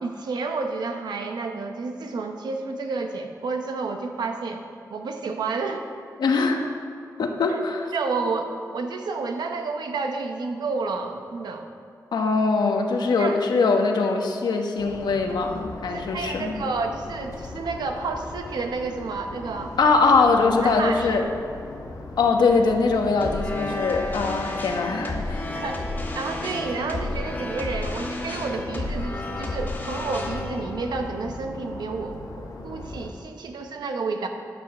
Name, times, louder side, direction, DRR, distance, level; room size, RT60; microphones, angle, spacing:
voice 1, 0.0-4.6 4.9-5.8 7.5-7.6 7.9-11.7 13.2-13.4 15.8-19.7 20.6-21.2 25.5-34.3, right 4 dB, 85° right, 5 dB, 0.9 m, -30 dB
voice 2, 6.2-6.7 7.2-7.9 12.1-16.6 19.8-21.2 22.2-25.5, left 4 dB, 90° left, 3 dB, 1.1 m, -22 dB
sound 1, 14.8-33.1, left 2 dB, 60° left, 1.4 m, -39 dB
sound 2, 23.2-32.4, left 2 dB, 30° left, 1.5 m, -32 dB
10.0 x 6.3 x 6.5 m, 2.4 s
wide cardioid pair, 135°, 7 cm